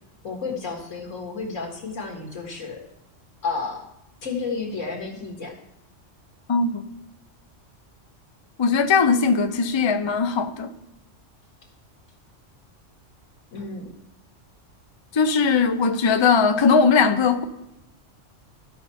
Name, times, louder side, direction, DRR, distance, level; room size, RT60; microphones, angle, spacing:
voice 1, 0.2-2.9 3.4-3.9 4.2-5.5 13.5-13.9, left 4 dB, 85° left, 2.1 m, -31 dB
voice 2, 6.5-6.8 8.6-10.7 15.1-17.4, left 5 dB, 35° left, 0.5 m, -19 dB
14.5 x 5.5 x 4.2 m
omnidirectional pair, 1.3 m